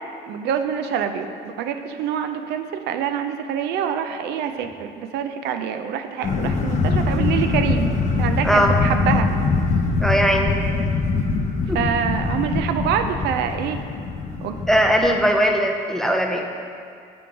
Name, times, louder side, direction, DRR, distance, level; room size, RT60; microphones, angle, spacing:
voice 1, 0.3-7.9 8.2-9.3 11.6-13.8 14.4-14.6, right 8 dB, 80° right, 7 dB, 0.4 m, -26 dB
sound 1, 6.2-15.2, left 3 dB, 45° left, 0.6 m, -23 dB
voice 2, 8.4-8.8 10.0-10.6 11.7-11.8 14.7-16.4, equal, ahead, 3 dB, 0.4 m, -19 dB
6.0 x 3.8 x 4.6 m, 2.3 s
cardioid pair, 110°, 17 cm